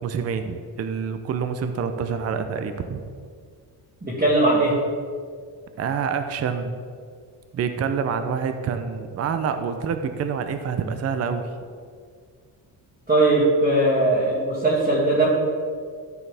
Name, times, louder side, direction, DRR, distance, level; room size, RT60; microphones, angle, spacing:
voice 1, 0.0-3.0 5.8-6.8 7.5-11.5, right 6 dB, 35° right, 8 dB, 0.5 m, -27 dB
voice 2, 4.0-4.8 13.1-15.3, right 2 dB, 20° right, -8 dB, 2.0 m, -19 dB
13.5 x 4.7 x 3.4 m, 2.1 s
cardioid pair, 130°, 44 cm